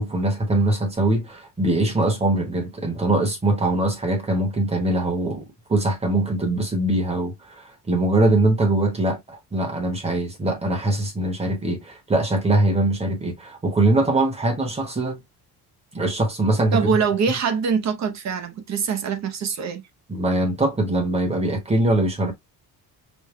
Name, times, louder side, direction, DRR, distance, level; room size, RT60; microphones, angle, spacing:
voice 1, 0.0-5.4 5.7-15.2 15.9-16.9 20.1-22.3, right 2 dB, 15° right, 1.0 m, -22 dB
voice 2, 16.7-19.8, right 6 dB, 45° right, 0.7 m, -23 dB
5.3 x 2.2 x 3.0 m
cardioid pair, 180°, 39 cm